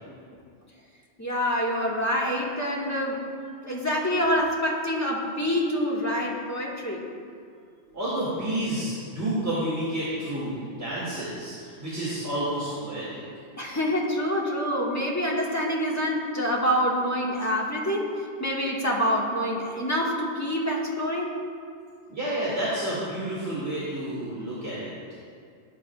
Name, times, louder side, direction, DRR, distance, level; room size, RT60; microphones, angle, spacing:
voice 1, 1.2-3.3 3.6-7.1 13.6-21.3, equal, 15° left, -4 dB, 1.8 m, -26 dB
voice 2, 7.9-13.2 22.1-24.9, right 1 dB, 60° right, -9 dB, 2.8 m, -30 dB
18.0 x 11.0 x 2.5 m, 2.3 s
omnidirectional pair, 1.2 m